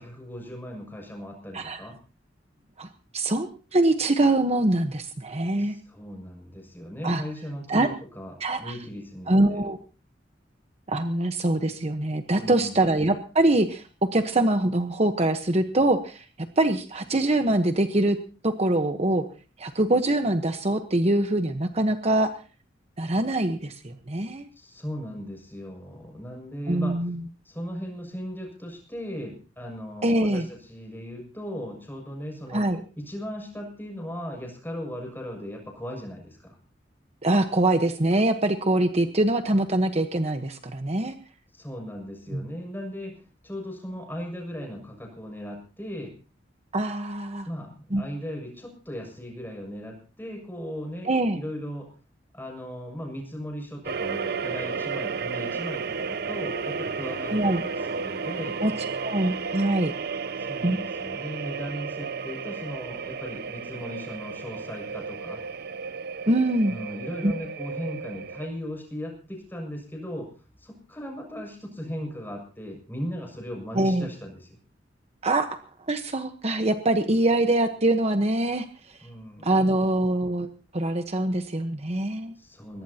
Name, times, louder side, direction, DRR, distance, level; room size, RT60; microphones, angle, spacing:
voice 1, 0.0-2.0 5.6-9.6 12.3-12.8 24.6-27.0 27.4-32.6 33.0-36.6 41.5-46.1 47.4-51.9 52.3-58.6 60.4-65.4 66.7-70.3 70.6-74.6 79.0-79.6 82.4-82.8, equal, 10° left, 2 dB, 6.7 m, -37 dB
voice 2, 2.8-5.8 7.0-7.2 7.7-7.9 8.4-8.8 9.3-9.8 10.9-13.8 14.1-16.2 16.6-18.2 18.4-19.2 19.6-22.3 23.0-24.5 26.7-27.2 30.0-30.5 32.5-32.8 37.2-41.1 42.3-42.4 46.7-47.5 47.9-48.0 51.0-51.4 57.3-57.6 58.6-58.7 59.0-59.9 60.6-60.8 66.3-66.7 67.2-67.3 73.7-74.1 75.2-75.6 75.9-78.9 79.4-82.3, right 1 dB, 35° right, 7 dB, 1.1 m, -24 dB
sound 1, 53.8-68.5, right 5 dB, 60° right, 0.7 m, -33 dB
22.5 x 20.0 x 2.9 m, 0.37 s
head